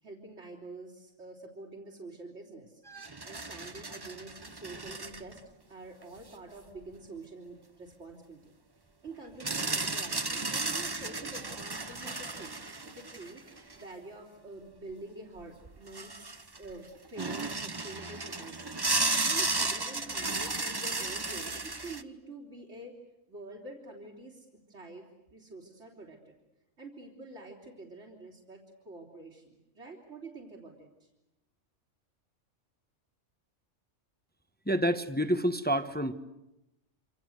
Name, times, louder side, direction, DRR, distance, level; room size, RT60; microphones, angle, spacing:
voice 1, 0.0-2.8 3.2-5.4 5.7-8.5 9.0-13.4 13.7-18.7 19.2-22.9 23.3-26.3 26.8-31.1, right 2 dB, 65° right, -3 dB, 4.1 m, -47 dB
sound 1, 2.9-5.4 6.0-6.1 9.4-13.8 15.4-15.5 15.7-16.7 17.2-22.0, right 3 dB, 20° right, 1.0 m, -34 dB
voice 2, 34.7-36.1, equal, 10° left, 9 dB, 1.1 m, -28 dB
27.0 x 27.0 x 8.1 m, 0.92 s
omnidirectional pair, 1.3 m